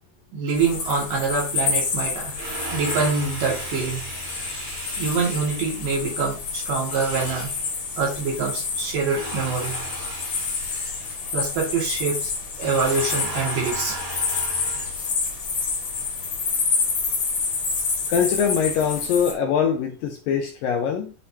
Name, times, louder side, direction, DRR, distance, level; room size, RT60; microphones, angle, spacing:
voice 1, 0.3-7.6 8.0-12.3 12.6-15.1, right 4 dB, 60° right, -3 dB, 3.7 m, -26 dB
sound 1, 0.5-19.3, left 5 dB, 50° left, 3.2 m, -28 dB
voice 2, 18.1-21.1, left 7 dB, 75° left, 2 dB, 2.2 m, -23 dB
11.5 x 3.9 x 2.9 m, 0.35 s
omnidirectional pair, 4.7 m